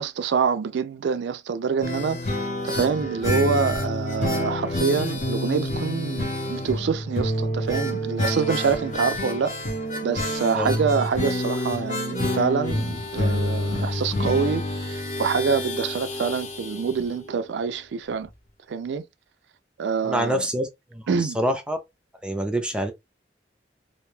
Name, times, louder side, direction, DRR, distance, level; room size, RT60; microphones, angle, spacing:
voice 1, 0.0-9.5 10.0-18.3 18.7-19.1 19.8-20.4 21.1-21.4, right 6 dB, 80° right, 0.3 m, -26 dB
sound 1, 1.8-17.5 17.7-17.8 18.1-18.2, left 1 dB, 45° left, 0.7 m, -28 dB
voice 2, 20.0-21.8 22.2-22.9, equal, 5° right, 0.4 m, -26 dB
2.5 x 2.2 x 3.1 m
head